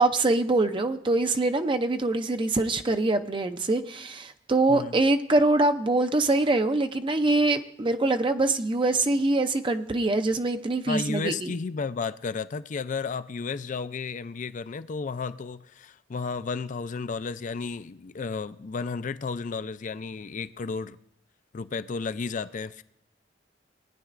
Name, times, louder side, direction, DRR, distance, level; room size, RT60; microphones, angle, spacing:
voice 1, 0.0-11.5, right 2 dB, 25° right, 0.5 m, -24 dB
voice 2, 10.9-21.0 21.5-22.8, left 4 dB, 45° left, 0.4 m, -33 dB
19.0 x 9.7 x 2.5 m
head